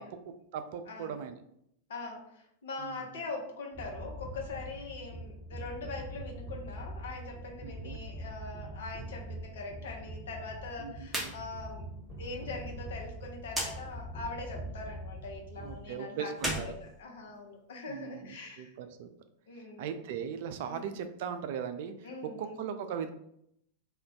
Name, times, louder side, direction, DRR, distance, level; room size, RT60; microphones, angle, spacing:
voice 1, 0.3-1.4 2.8-3.1 7.6-8.0 10.8-11.3 15.6-16.8 17.9-19.1 19.8-23.1, right 7 dB, 50° right, 9 dB, 0.3 m, -39 dB
voice 2, 0.9-1.2 1.9-11.8 12.2-18.7 19.5-19.9 20.7-20.9 22.0-22.6, left 3 dB, 60° left, 1 dB, 0.7 m, -42 dB
sound 1, 3.7-15.8, right 1 dB, 20° left, 1.1 m, -43 dB
sound 2, 11.1-11.4 11.7-11.8 13.5-13.7 16.3-17.6, right 1 dB, ahead, 0.7 m, -35 dB
2.3 x 2.1 x 3.7 m, 0.74 s
figure-of-eight pair, 90°, 0 cm